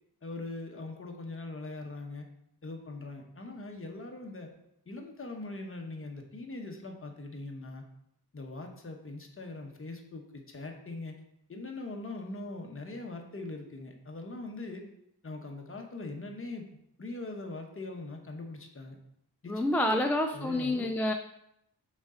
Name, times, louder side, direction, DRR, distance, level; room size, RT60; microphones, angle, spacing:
voice 1, 0.2-2.3 2.6-4.5 4.9-7.8 8.3-11.2 11.5-14.9 15.2-16.6 17.0-19.0 19.4-20.0 20.3-20.9, left 2 dB, 35° left, 2 dB, 1.0 m, -41 dB
voice 2, 19.5-21.1, left 1 dB, 5° left, 4 dB, 0.3 m, -28 dB
6.1 x 4.2 x 3.7 m, 0.76 s
wide cardioid pair, 105°, 39 cm